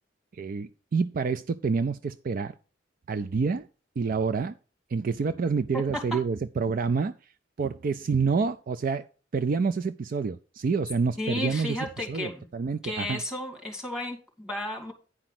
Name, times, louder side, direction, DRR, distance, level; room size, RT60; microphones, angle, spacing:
voice 1, 0.3-2.5 3.1-3.7 4.0-4.5 4.9-7.1 7.6-9.1 9.3-11.8 12.1-13.2, right 5 dB, 45° right, 0.4 m, -28 dB
voice 2, 5.7-6.2 11.2-12.5 12.8-14.9, left 1 dB, 5° right, 2.3 m, -33 dB
9.9 x 5.1 x 5.8 m
head